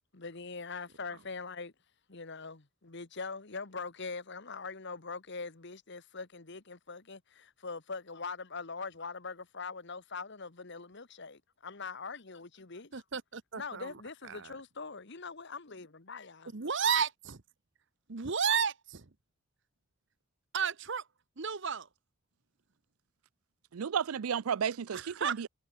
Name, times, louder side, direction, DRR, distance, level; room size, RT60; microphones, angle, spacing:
voice 1, 0.1-1.7 2.1-13.0 13.5-16.5, left 4 dB, 55° left, 1.4 m, -42 dB
voice 2, 12.9-13.9 14.2-14.6 16.5-17.4 18.1-19.1 20.5-21.1 21.4-21.9 24.9-25.5, right 7 dB, 55° right, 1.1 m, -32 dB
voice 3, 23.7-25.5, right 7 dB, 85° right, 0.5 m, -33 dB
head